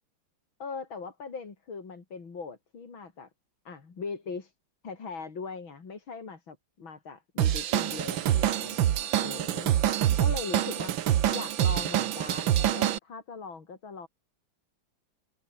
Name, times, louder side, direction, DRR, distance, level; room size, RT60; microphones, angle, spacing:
voice 1, 0.6-3.3 3.7-4.5 4.8-9.7 10.2-10.9 11.3-14.1, left 5 dB, 90° left, 4.2 m, -40 dB
Drum kit / Drum, 7.4-13.0, right 11 dB, 80° right, 1.8 m, -26 dB
omnidirectional pair, 2.1 m